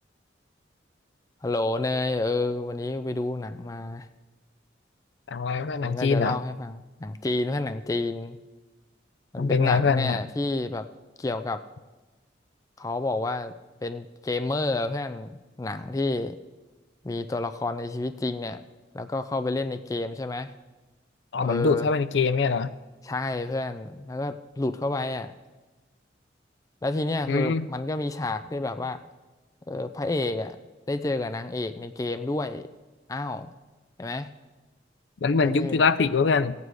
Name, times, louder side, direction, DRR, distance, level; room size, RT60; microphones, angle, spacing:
voice 1, 1.4-4.1 5.8-8.4 9.3-10.8 11.2-11.6 12.8-13.5 13.8-16.4 17.0-18.6 18.9-20.5 21.4-21.9 23.0-25.3 26.8-29.0 29.7-30.6 30.9-32.7 33.1-33.5 34.0-34.3 35.4-35.9, left 2 dB, 20° left, 10 dB, 0.4 m, -29 dB
voice 2, 5.3-6.4 9.4-10.2 21.3-22.7 27.3-27.7 35.2-36.5, left 4 dB, 75° left, 14 dB, 0.5 m, -23 dB
15.5 x 8.3 x 4.7 m, 1.2 s
head